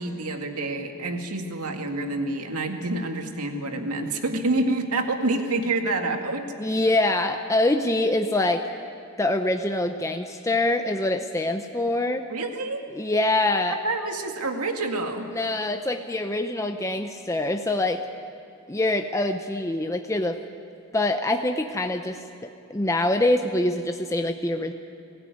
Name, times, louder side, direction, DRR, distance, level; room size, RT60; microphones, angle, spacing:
voice 1, 0.0-6.5 12.3-12.8 13.7-15.3, right 2 dB, 80° right, 4 dB, 2.1 m, -27 dB
voice 2, 6.6-8.6 9.2-12.3 12.9-13.8 15.3-18.0 18.7-20.4 20.9-24.7, left 2 dB, 15° left, 5 dB, 0.7 m, -25 dB
22.0 x 15.5 x 9.3 m, 2.7 s
head